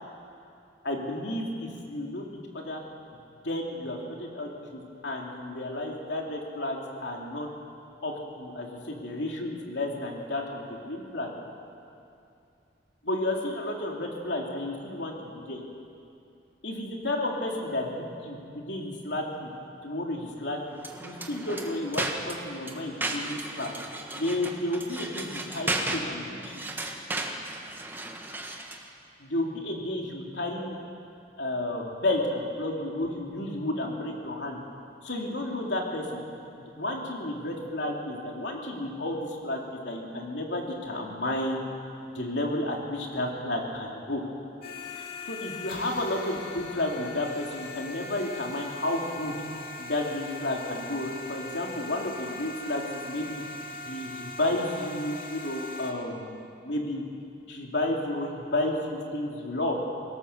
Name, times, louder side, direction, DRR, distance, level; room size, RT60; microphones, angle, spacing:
voice 1, 0.8-2.3 2.5-2.8 3.4-7.5 8.0-11.3 13.0-15.6 16.6-19.5 19.8-20.6 21.0-23.7 24.1-26.5 29.2-30.7 31.4-34.6 35.0-36.2 36.8-41.7 42.1-44.2 45.0-49.3 49.8-53.4 53.8-57.0 57.5-59.8, left 1 dB, 70° left, 0 dB, 3.1 m, -32 dB
sound 1, 20.8-28.9, right 2 dB, 10° right, 1.3 m, -35 dB
sound 2, 44.6-55.9, left 2 dB, 50° left, 3.1 m, -40 dB
24.0 x 17.5 x 6.9 m, 2.6 s
head